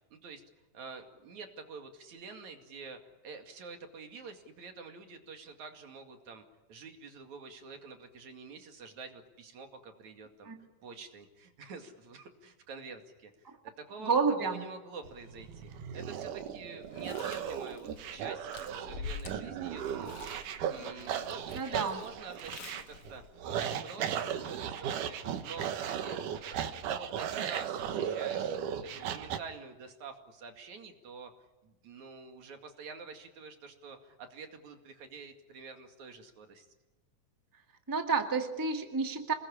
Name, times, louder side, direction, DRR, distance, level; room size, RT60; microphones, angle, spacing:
voice 1, 0.1-0.4 0.7-6.4 6.7-10.5 10.8-20.3 20.7-23.2 23.6-31.3 31.6-36.7, right 4 dB, 65° right, 5 dB, 3.6 m, -48 dB
voice 2, 14.0-14.6 21.5-22.0 37.9-39.3, right 5 dB, 10° right, 4 dB, 1.6 m, -30 dB
sound 1, 15.0-29.4, right 9 dB, 85° right, 2.9 m, -36 dB
Chewing mastication, 16.8-23.4, left 5 dB, 50° left, 2.4 m, -48 dB
27.5 x 20.5 x 10.0 m, 1.1 s
omnidirectional pair, 3.6 m